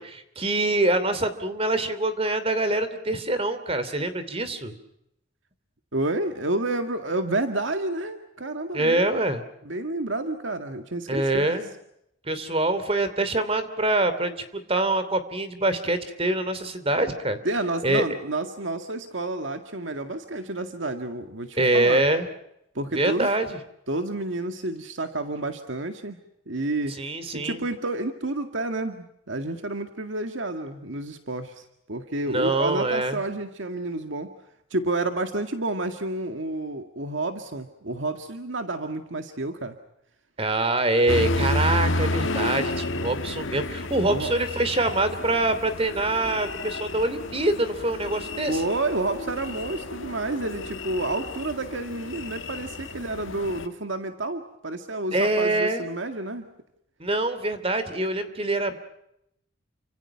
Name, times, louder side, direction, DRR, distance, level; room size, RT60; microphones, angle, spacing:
voice 1, 0.0-4.7 8.7-9.4 11.1-11.7 12.3-14.3 14.7-17.4 17.8-18.0 21.6-22.3 22.9-23.6 27.0-27.6 32.3-33.2 40.4-48.6 55.1-55.8 57.0-58.8, right 2 dB, 30° right, 12 dB, 2.8 m, -24 dB
voice 2, 5.9-9.1 9.7-11.6 17.4-22.1 22.8-23.3 23.9-26.2 26.5-34.3 34.7-39.8 43.0-43.1 44.0-44.3 48.5-56.5, right 2 dB, 75° right, 6 dB, 1.9 m, -30 dB
sound 1, 41.1-53.7, left 2 dB, 85° left, 1.6 m, -31 dB
30.0 x 26.0 x 5.9 m, 0.81 s
head